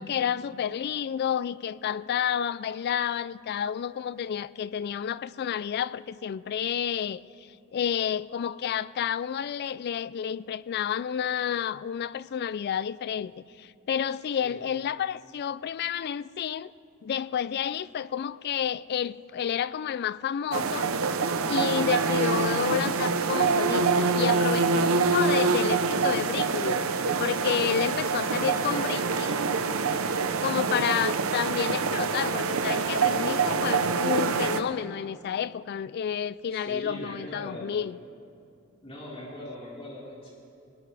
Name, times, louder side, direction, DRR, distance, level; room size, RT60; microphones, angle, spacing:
voice 1, 0.0-7.2 7.7-16.7 17.0-20.9 21.5-26.8 27.2-29.3 30.4-38.0, left 8 dB, 50° left, 0.3 m, -30 dB
sound 1, 20.5-34.6, right 4 dB, 75° right, 0.7 m, -25 dB
voice 2, 28.3-29.4 30.3-30.8 36.5-37.7 38.8-40.3, left 1 dB, 30° left, 4.3 m, -40 dB
20.0 x 17.0 x 3.3 m
head